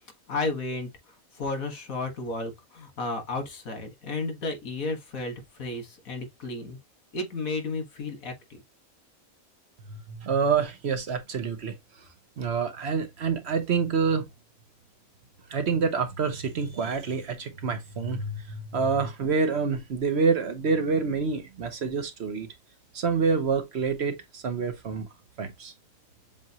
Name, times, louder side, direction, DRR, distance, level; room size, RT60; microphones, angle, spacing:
voice 1, 0.3-6.8 7.1-8.3, left 3 dB, 85° left, 1.9 m, -33 dB
voice 2, 9.9-11.7 12.4-14.2 15.5-22.5 22.9-25.1 25.4-25.7, right 5 dB, 55° right, 1.0 m, -27 dB
7.3 x 2.6 x 2.8 m
omnidirectional pair, 1.4 m